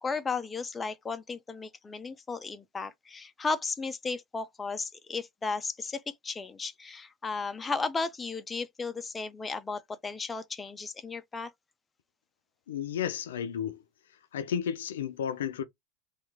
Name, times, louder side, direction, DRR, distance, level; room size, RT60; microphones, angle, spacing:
voice 1, 0.0-11.5, left 4 dB, 20° left, 0.5 m, -35 dB
voice 2, 12.7-13.8 14.3-15.6, left 8 dB, 80° left, 0.5 m, -32 dB
2.9 x 2.4 x 3.4 m
hypercardioid pair, 90°, 0 cm